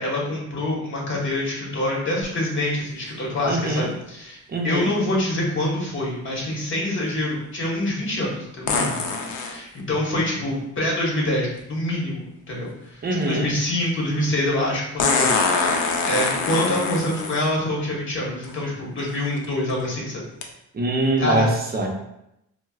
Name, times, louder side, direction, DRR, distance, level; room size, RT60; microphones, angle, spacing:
voice 1, 0.0-9.0 9.4-15.3 15.6-20.2 21.2-21.5, left 1 dB, 40° left, -3 dB, 1.2 m, -26 dB
sound 1, 2.2-2.3 8.7-9.6 11.6-11.7 15.0-17.5 18.4-18.5 19.2-19.4 20.4-20.5, left 4 dB, 75° left, 0.6 m, -23 dB
voice 2, 3.5-3.9 4.5-4.9 13.0-13.5 20.7-21.9, right 2 dB, 30° right, 0 dB, 0.6 m, -23 dB
4.3 x 2.1 x 2.3 m, 0.81 s
cardioid pair, 90°, 30 cm